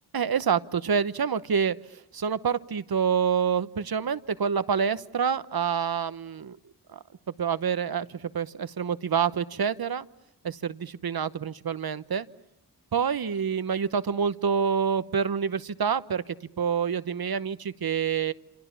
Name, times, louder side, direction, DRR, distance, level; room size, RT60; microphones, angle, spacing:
voice 1, 0.1-6.5 6.9-7.0 7.4-10.1 10.4-12.3 12.9-18.3, right 7 dB, 60° right, 14 dB, 1.0 m, -27 dB
27.5 x 27.5 x 7.1 m, 0.82 s
wide cardioid pair, 70°, 41 cm